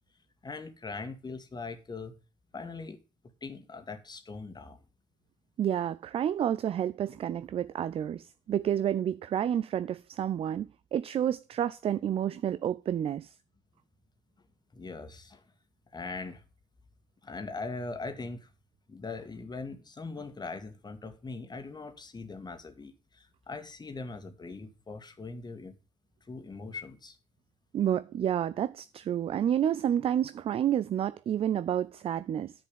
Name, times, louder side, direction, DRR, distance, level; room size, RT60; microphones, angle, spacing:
voice 1, 0.4-2.2 2.5-3.0 3.4-4.8 14.7-15.4 15.9-16.4 17.2-18.5 18.9-25.7 26.3-27.2, left 3 dB, 25° left, 1.8 m, -41 dB
voice 2, 5.6-13.3 27.7-32.5, right 10 dB, 35° right, 0.4 m, -30 dB
10.0 x 5.3 x 6.8 m
figure-of-eight pair, 45°, 16 cm